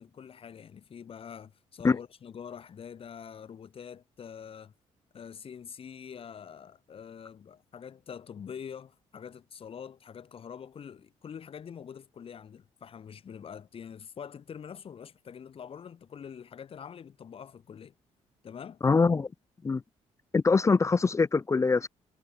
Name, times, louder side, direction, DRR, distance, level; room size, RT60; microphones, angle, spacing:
voice 1, 0.0-4.7 5.1-17.9 18.4-18.8, left 7 dB, 50° left, 3.4 m, -45 dB
voice 2, 18.8-19.3 19.6-19.8 20.3-21.9, left 4 dB, 25° left, 0.6 m, -23 dB
cardioid pair, 110°, 12 cm